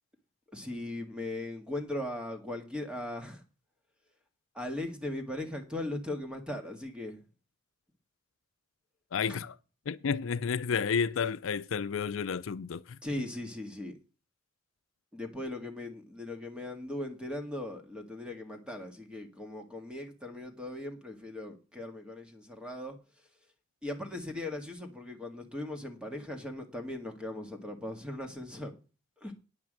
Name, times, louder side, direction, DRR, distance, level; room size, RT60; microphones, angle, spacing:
voice 1, 0.5-3.4 4.6-7.2 9.3-9.4 13.0-13.9 15.1-23.0 23.8-28.7 29.2-29.3, left 1 dB, 5° right, 1.8 m, -39 dB
voice 2, 9.1-9.6 9.9-12.8, left 6 dB, 75° left, 0.5 m, -31 dB
9.6 x 6.0 x 7.5 m
head